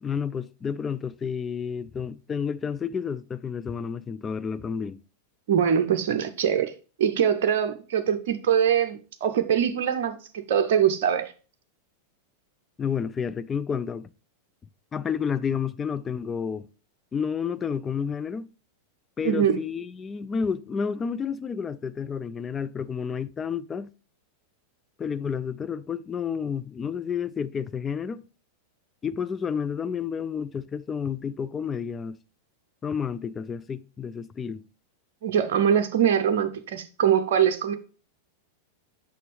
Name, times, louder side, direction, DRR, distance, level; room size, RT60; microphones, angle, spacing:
voice 1, 0.0-5.0 12.8-14.1 14.9-16.7 17.1-18.5 19.2-23.9 25.0-28.2 29.0-32.2 32.8-34.6, left 6 dB, 20° left, 0.3 m, -30 dB
voice 2, 5.5-6.7 7.0-11.3 19.2-19.6 35.2-37.7, right 8 dB, 55° right, 0.6 m, -23 dB
6.6 x 5.2 x 3.3 m
figure-of-eight pair, 90°, 0 cm